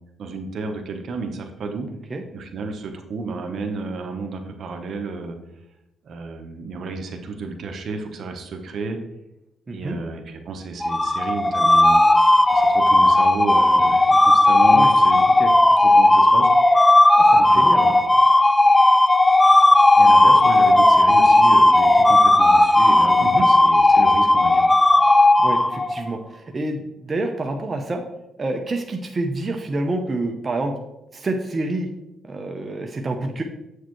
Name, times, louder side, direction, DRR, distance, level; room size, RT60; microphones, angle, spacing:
voice 1, 0.2-1.9 2.3-5.4 6.0-9.0 9.7-12.0 12.5-15.2 15.8-16.5 17.3-17.9 20.0-24.7, right 3 dB, 60° right, 4 dB, 1.1 m, -31 dB
voice 2, 9.7-10.0 14.7-14.9 15.4-15.5 17.2-18.0 23.2-23.5 25.4-28.0 28.4-30.7 31.1-31.9 32.2-33.4, right 2 dB, 30° right, 3 dB, 0.8 m, -28 dB
sound 1, 10.8-26.1, left 2 dB, 15° left, 0.4 m, -15 dB
7.5 x 6.6 x 3.1 m, 0.90 s
cardioid pair, 90°, 0 cm